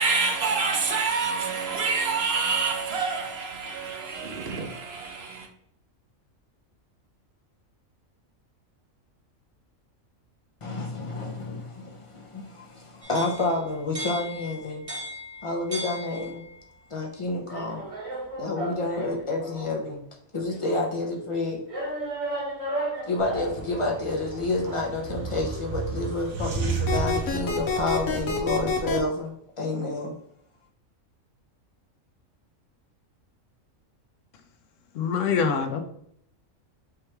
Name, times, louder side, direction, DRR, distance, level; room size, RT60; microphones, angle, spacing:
voice 1, 0.0-5.5, right 4 dB, 55° right, 0.9 m, -27 dB
voice 2, 10.6-14.8 15.4-16.4 16.9-17.8 18.4-20.0 20.3-21.6 23.0-30.2, left 2 dB, 35° left, 0.5 m, -29 dB
sound 1, 13.0-16.7 17.5-19.8 20.5-20.6 21.7-23.6, right 1 dB, 30° right, 1.0 m, -35 dB
sound 2, 23.2-28.3, right 4 dB, 80° right, 1.3 m, -33 dB
sound 3, 26.9-29.0, left 4 dB, 90° left, 1.3 m, -27 dB
voice 3, 35.0-35.8, left 6 dB, 70° left, 1.0 m, -24 dB
4.7 x 3.0 x 3.3 m
omnidirectional pair, 1.4 m